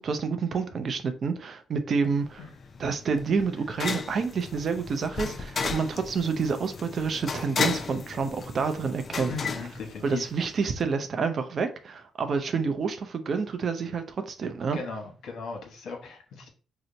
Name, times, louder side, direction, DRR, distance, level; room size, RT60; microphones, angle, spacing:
voice 1, 0.0-2.5 2.8-9.3 10.0-14.8, right 5 dB, 55° right, 0.5 m, -28 dB
sound 1, 2.2-10.6, left 5 dB, 45° left, 0.4 m, -34 dB
voice 2, 9.3-10.2 14.7-16.5, left 4 dB, 75° left, 0.9 m, -37 dB
2.8 x 2.0 x 3.9 m
supercardioid pair, 65°, 0 cm